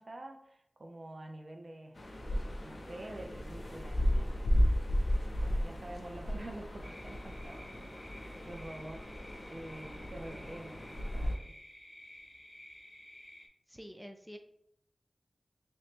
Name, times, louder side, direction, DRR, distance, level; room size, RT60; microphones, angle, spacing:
voice 1, 0.0-2.0 2.6-4.6 5.4-9.0 9.5-11.6, right 1 dB, 65° right, 3 dB, 0.5 m, -47 dB
sound 1, 2.0-11.4, equal, 60° left, 0.6 m, -34 dB
sound 2, 3.0-8.7, equal, 30° right, 1.2 m, -54 dB
sound 3, 6.8-13.5, left 1 dB, 25° left, 0.8 m, -53 dB
voice 2, 13.7-14.4, equal, 5° right, 6 dB, 0.4 m, -47 dB
3.0 x 2.8 x 3.4 m, 0.74 s
cardioid pair, 45°, 0 cm